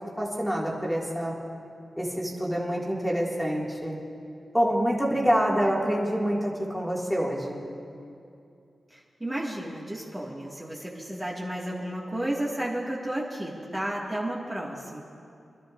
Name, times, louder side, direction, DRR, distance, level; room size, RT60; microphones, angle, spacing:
voice 1, 0.2-1.3 2.0-3.9 4.5-7.7, equal, ahead, -3 dB, 2.1 m, -26 dB
voice 2, 8.9-15.0, right 1 dB, 15° right, -5 dB, 1.8 m, -32 dB
26.5 x 12.0 x 2.5 m, 2.5 s
cardioid pair, 80°, 0 cm